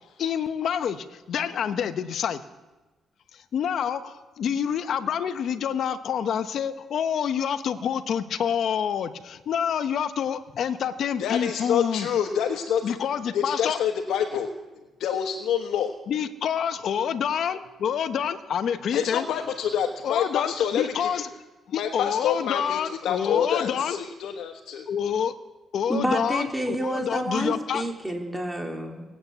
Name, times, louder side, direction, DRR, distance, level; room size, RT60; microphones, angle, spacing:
voice 1, 0.2-2.4 3.3-12.1 12.8-13.8 16.1-19.3 20.0-21.3 21.7-24.0 24.9-25.4 25.7-27.8, left 8 dB, 65° left, 10 dB, 1.0 m, -27 dB
voice 2, 11.2-12.9 13.3-14.5 15.0-15.9 18.9-21.2 21.7-24.8, left 8 dB, 80° left, 3 dB, 1.4 m, -27 dB
voice 3, 25.9-29.0, right 1 dB, 5° right, 1 dB, 3.0 m, -29 dB
19.0 x 8.6 x 8.3 m, 1.1 s
cardioid pair, 90°, 0 cm